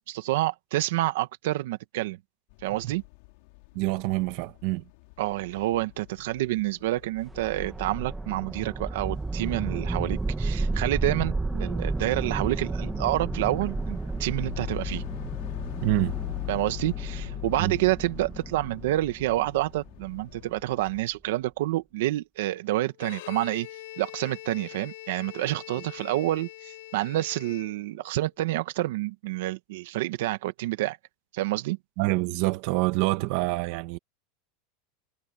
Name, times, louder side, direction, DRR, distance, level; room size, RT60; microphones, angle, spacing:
voice 1, 0.1-2.2 2.6-3.0 5.2-15.0 16.5-23.7 24.0-31.0 31.3-31.8, right 16 dB, 75° right, 1.5 m, -28 dB
sound 1, 2.5-21.0, left 28 dB, 60° left, 5.7 m, -42 dB
voice 2, 3.7-4.8 15.8-16.2 17.6-17.8 25.7-25.8 32.0-34.0, right 20 dB, 55° right, 1.6 m, -26 dB
sound 2, 7.2-20.3, right 3 dB, 10° right, 1.9 m, -32 dB
Bowed string instrument, 22.9-28.2, left 17 dB, 75° left, 6.7 m, -43 dB
supercardioid pair, 155°, 0 cm